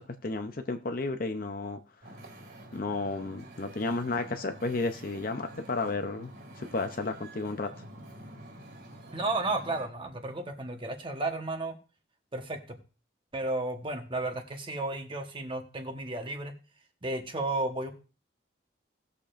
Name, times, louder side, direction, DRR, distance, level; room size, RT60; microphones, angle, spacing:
voice 1, 0.0-1.8 2.7-7.7, left 3 dB, 45° left, 6 dB, 0.6 m, -32 dB
Wind / Ocean, 2.0-9.9, right 1 dB, 55° right, 2.2 m, -48 dB
voice 2, 9.1-11.7 12.3-12.8 13.3-16.5 17.0-17.9, right 2 dB, 25° right, 5 dB, 1.2 m, -33 dB
18.5 x 6.8 x 2.5 m, 0.34 s
head